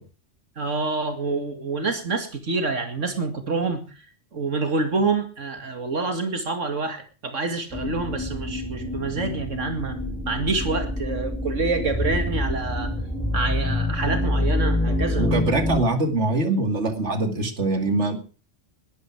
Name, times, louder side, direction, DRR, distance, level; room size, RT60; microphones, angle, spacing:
voice 1, 0.6-4.0 4.3-10.0 10.3-12.9 13.3-15.3, right 3 dB, 85° right, 6 dB, 2.6 m, -27 dB
sound 1, 7.7-15.8, left 1 dB, 5° left, 4.1 m, -26 dB
voice 2, 15.2-18.2, right 2 dB, 65° right, 7 dB, 2.7 m, -23 dB
20.0 x 12.5 x 4.8 m, 0.37 s
omnidirectional pair, 1.3 m